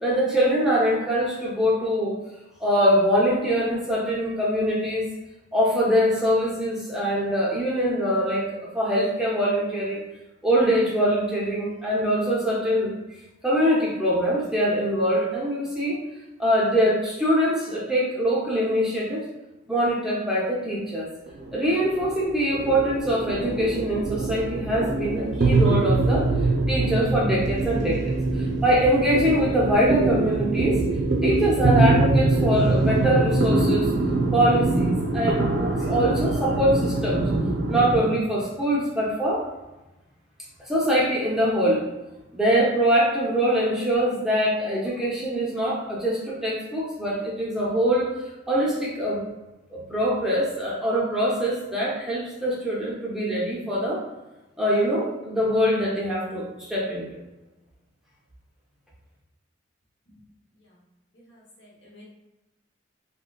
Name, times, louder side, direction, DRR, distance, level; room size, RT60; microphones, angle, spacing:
voice 1, 0.0-2.2 2.6-5.1 5.5-8.5 8.7-10.0 10.4-12.9 13.4-16.0 16.4-19.2 19.7-21.1 21.5-26.3 26.7-30.8 31.2-33.9 34.3-37.3 37.7-39.4 40.7-41.9 42.3-48.1 48.5-49.2 49.7-54.0 54.6-57.1, equal, 5° right, -7 dB, 0.5 m, -23 dB
sound 1, 21.3-38.1, right 2 dB, 65° right, 0.5 m, -24 dB
voice 2, 61.1-62.0, left 1 dB, 65° left, -5 dB, 0.9 m, -53 dB
3.5 x 2.1 x 2.2 m, 1.0 s
head